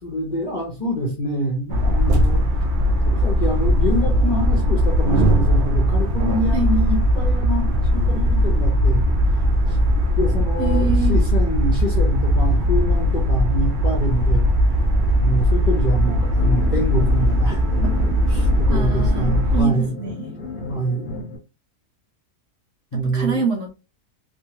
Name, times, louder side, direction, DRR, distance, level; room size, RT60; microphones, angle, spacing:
voice 1, 0.0-2.4 3.0-9.0 9.3-9.8 10.1-14.8 15.2-19.9 20.7-21.0 22.9-23.4, right 1 dB, 35° left, 0.8 m, -26 dB
sound 1, 1.7-19.6, equal, 75° right, 0.4 m, -19 dB
voice 2, 10.6-11.2 18.7-20.3 22.9-23.7, right 6 dB, 60° right, 1.1 m, -25 dB
sound 2, 16.0-21.4, left 4 dB, 85° left, 1.5 m, -33 dB
3.4 x 2.3 x 2.9 m
omnidirectional pair, 1.6 m